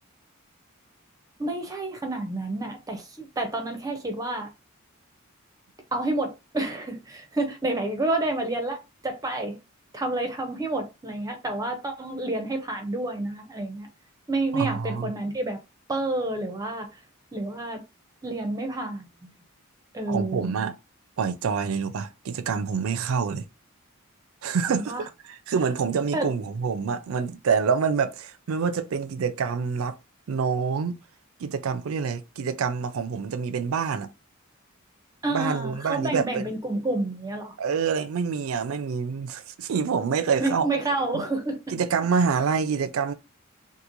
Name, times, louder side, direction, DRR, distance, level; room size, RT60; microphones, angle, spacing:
voice 1, 1.4-4.5 5.9-9.6 9.9-13.9 14.3-15.6 15.9-16.9 17.3-17.8 18.2-19.1 19.9-20.5 24.7-25.0 26.1-26.4 35.2-37.5 40.3-41.6, right 2 dB, 15° right, 0.5 m, -29 dB
voice 2, 14.5-15.1 20.1-20.7 21.2-23.5 24.4-25.0 25.3-30.0 30.3-31.0 31.4-34.1 35.3-36.4 37.6-40.7 41.1-41.3 41.7-43.1, right 5 dB, 75° right, 0.4 m, -26 dB
2.9 x 2.4 x 2.5 m
head